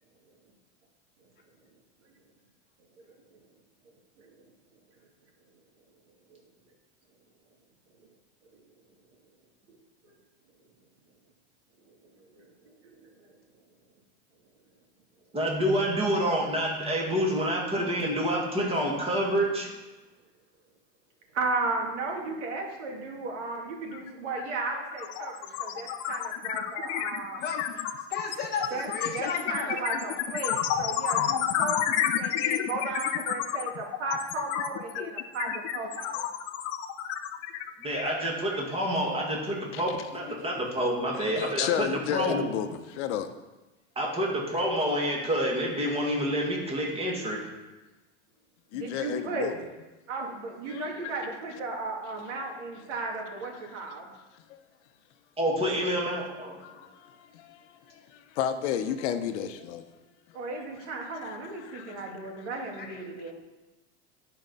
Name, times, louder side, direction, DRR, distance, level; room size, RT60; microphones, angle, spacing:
voice 1, 15.3-19.7 37.8-41.7 42.1-42.4 44.0-47.5 55.4-56.6, equal, 15° right, 2.1 m, -28 dB
voice 2, 21.3-27.4 28.7-28.9 29.1-36.2 48.7-49.5 50.1-54.1 60.3-63.3, right 3 dB, 85° right, 2.2 m, -35 dB
sound 1, 23.9-24.1 24.4-38.7, left 10 dB, 45° left, 0.7 m, -30 dB
voice 3, 27.0-27.8 28.1-30.1 62.8-63.0, left 5 dB, 25° left, 1.1 m, -35 dB
voice 4, 40.2-40.7 41.1-43.3 48.7-49.6 50.7-51.1 53.3-53.8 54.3-54.6 56.6-59.9 61.1-62.4, left 9 dB, 70° left, 0.9 m, -33 dB
11.0 x 4.7 x 5.4 m
supercardioid pair, 140°, 35 cm